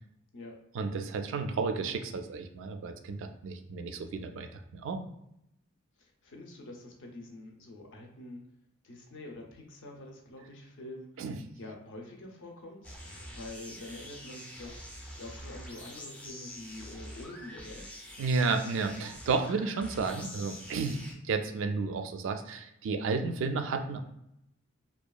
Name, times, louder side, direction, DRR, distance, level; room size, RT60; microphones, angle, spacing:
voice 1, 0.7-5.0 11.2-11.4 18.2-24.0, right 4 dB, 65° right, 6 dB, 0.3 m, -32 dB
voice 2, 6.0-8.4 8.8-11.2 11.6-17.9, left 1 dB, 65° left, 1 dB, 0.5 m, -46 dB
sound 1, 12.8-21.1, equal, 5° left, 0.4 m, -46 dB
2.7 x 2.3 x 2.3 m, 0.79 s
head